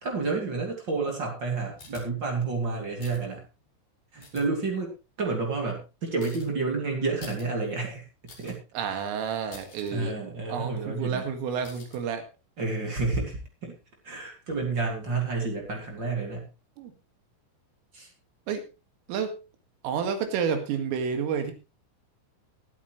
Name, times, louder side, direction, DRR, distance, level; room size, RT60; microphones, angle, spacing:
voice 1, 0.0-3.4 4.1-4.9 5.2-8.0 8.4-8.6 9.9-11.3 12.6-13.7 14.0-16.5 17.9-18.1, right 3 dB, 30° right, 1 dB, 2.3 m, -30 dB
sound 1, 1.8-2.0 3.0-3.2 4.2-4.4 6.2-6.5 7.2-7.5 7.8-7.9 8.3-8.6 9.0-9.1 9.4-9.9 11.6-12.0, left 4 dB, 35° left, 5.6 m, -47 dB
voice 2, 8.7-10.1 10.5-12.3 16.8-16.9 18.5-18.6 19.1-19.4 19.8-21.5, right 6 dB, 80° right, 7 dB, 4.4 m, -30 dB
21.5 x 8.5 x 3.1 m, 0.29 s
omnidirectional pair, 5.9 m